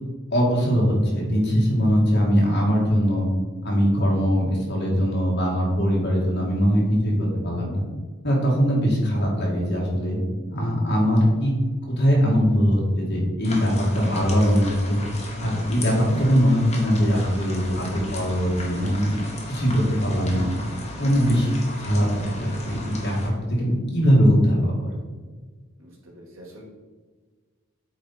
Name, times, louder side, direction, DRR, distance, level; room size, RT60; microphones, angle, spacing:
voice 1, 0.3-3.3 3.6-7.8 8.2-10.2 10.5-11.5 11.9-15.0 15.4-19.1 19.5-20.5 21.0-21.5 21.8-23.2 23.5-25.0, equal, 50° left, -3 dB, 2.1 m, -21 dB
sound 1, 13.4-23.3, left 1 dB, 30° left, 1.3 m, -36 dB
voice 2, 25.8-26.6, equal, 70° right, -2 dB, 1.9 m, -46 dB
8.4 x 4.3 x 4.2 m, 1.4 s
head